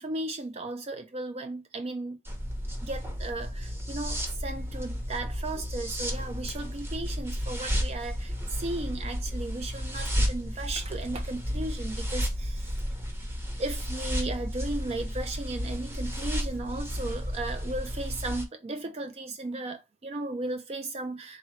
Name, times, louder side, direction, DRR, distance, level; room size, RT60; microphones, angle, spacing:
voice 1, 0.0-2.2 2.8-12.8 13.6-21.4, right 2 dB, 35° right, 0.4 m, -35 dB
sound 1, 2.2-18.4, equal, 10° right, 0.8 m, -32 dB
3.7 x 3.0 x 3.1 m
head